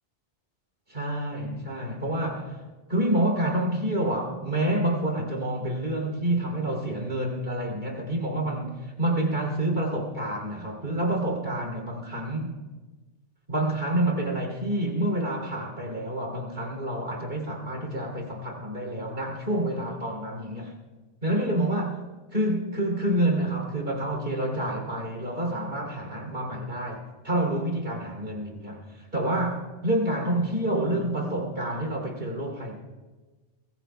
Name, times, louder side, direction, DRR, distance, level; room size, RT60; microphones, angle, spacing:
voice 1, 0.9-2.6 2.9-12.5 13.5-20.7 21.2-22.0 22.3-28.9 29.1-32.7, right 1 dB, 50° right, 2 dB, 3.4 m, -28 dB
22.5 x 21.5 x 2.3 m, 1.2 s
omnidirectional pair, 1.2 m